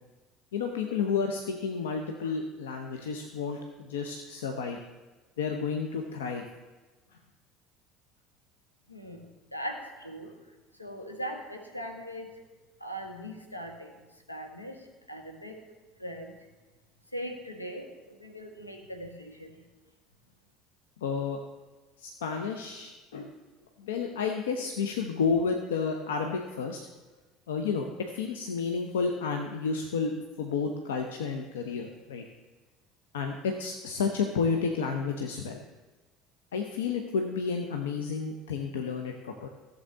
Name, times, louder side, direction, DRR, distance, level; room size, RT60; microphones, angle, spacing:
voice 1, 0.5-4.8 5.4-6.4 21.0-21.4 22.0-23.3 23.8-26.8 27.5-27.9 28.1-32.2 33.1-35.6 36.5-39.5, left 5 dB, 70° left, 4 dB, 0.8 m, -31 dB
voice 2, 8.9-10.3 10.8-12.3 12.8-13.9 14.3-15.6 16.0-16.3 17.1-19.6, equal, 85° left, 3 dB, 1.3 m, -40 dB
14.5 x 7.6 x 3.8 m, 1.2 s
figure-of-eight pair, 65°, 0 cm